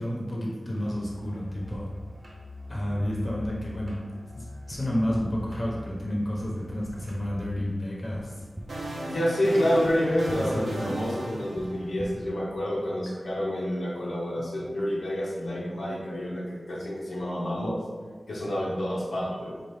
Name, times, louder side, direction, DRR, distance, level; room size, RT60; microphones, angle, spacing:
voice 1, 0.0-1.9 2.7-8.4 10.3-10.9, equal, 40° left, -4 dB, 0.9 m, -31 dB
Musical instrument, 0.7-7.8, left 2 dB, 45° right, 0.8 m, -44 dB
sound 1, 1.7-1.8 3.0-3.1 3.4-3.5 4.7-4.8 5.1-5.2 6.4-6.5 6.8-6.9 8.1-8.2 8.5-8.7 9.8-9.9 10.3-10.4 11.5-11.7 12.0-12.1, right 1 dB, 15° right, 0.4 m, -39 dB
sound 2, 8.3-12.5, right 1 dB, 85° right, 0.7 m, -37 dB
voice 2, 9.1-17.8 18.3-19.6, equal, 85° left, -6 dB, 0.8 m, -28 dB
4.5 x 2.4 x 3.3 m, 1.5 s
wide cardioid pair, 90°, 0 cm